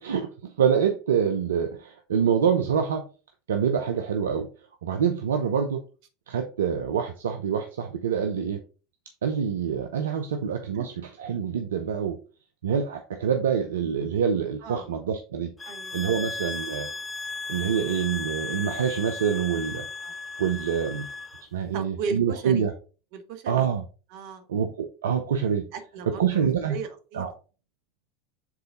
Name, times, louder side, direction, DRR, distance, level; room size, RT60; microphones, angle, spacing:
voice 1, 0.0-3.1 3.5-4.5 4.8-5.8 6.3-8.6 9.2-12.2 12.6-15.5 15.9-16.9 17.5-19.9 20.4-21.1 21.5-22.7 23.5-23.8 24.5-25.7 26.2-26.8 27.1-27.3, right 7 dB, 80° right, 5 dB, 0.7 m, -26 dB
sound 1, 15.6-21.4, left 3 dB, 20° left, 0.7 m, -36 dB
voice 2, 15.6-16.0 19.8-20.1 21.7-22.7 23.1-23.7 24.1-24.4 25.7-27.3, right 5 dB, 65° right, 8 dB, 1.3 m, -36 dB
7.4 x 3.9 x 3.8 m, 0.35 s
hypercardioid pair, 80°, 0 cm